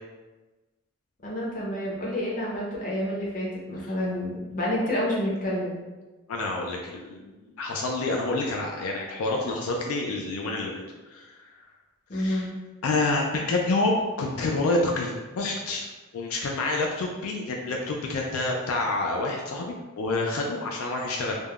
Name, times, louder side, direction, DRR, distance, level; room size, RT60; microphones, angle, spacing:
voice 1, 1.2-5.8 12.1-12.5, left 1 dB, 35° left, -5 dB, 0.6 m, -29 dB
voice 2, 6.3-11.6 12.1-12.5 12.8-21.4, left 2 dB, 75° left, 0 dB, 0.3 m, -28 dB
3.3 x 2.1 x 2.3 m, 1.2 s
head